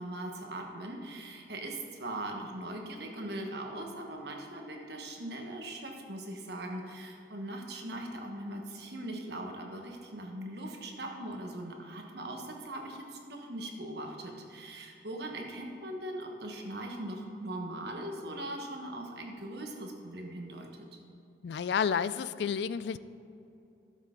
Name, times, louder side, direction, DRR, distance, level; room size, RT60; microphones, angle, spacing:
voice 1, 0.0-20.7, right 1 dB, 65° right, 1 dB, 1.3 m, -40 dB
voice 2, 21.4-23.0, left 7 dB, 65° left, 15 dB, 0.3 m, -30 dB
13.5 x 7.4 x 3.9 m, 2.7 s
head